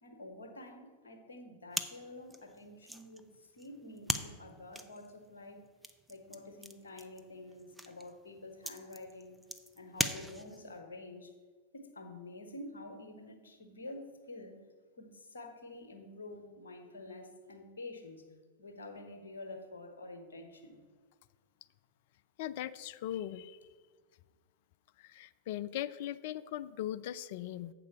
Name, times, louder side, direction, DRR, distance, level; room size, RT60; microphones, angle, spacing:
voice 1, 0.0-5.6 6.1-9.4 9.7-11.3 11.7-14.6 15.0-18.3 18.6-20.8, left 2 dB, 70° left, 5 dB, 1.2 m, -48 dB
sound 1, 1.7-10.8, right 1 dB, 5° right, 0.5 m, -41 dB
voice 2, 22.4-23.6 25.0-27.7, left 12 dB, 50° left, 16 dB, 0.3 m, -39 dB
7.6 x 4.8 x 6.9 m, 1.5 s
figure-of-eight pair, 90°, 0 cm